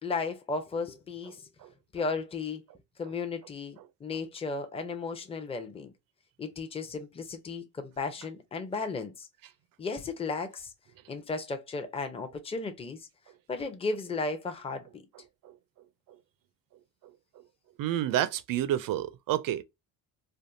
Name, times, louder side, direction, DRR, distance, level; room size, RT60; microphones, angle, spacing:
voice 1, 0.0-1.5 1.9-2.6 3.0-5.9 6.4-9.3 9.8-10.7 11.1-13.1 13.5-15.0, left 4 dB, 15° left, 0.6 m, -35 dB
voice 2, 17.8-19.6, right 12 dB, 60° right, 0.5 m, -29 dB
3.5 x 2.2 x 2.5 m
cardioid pair, 90°, 39 cm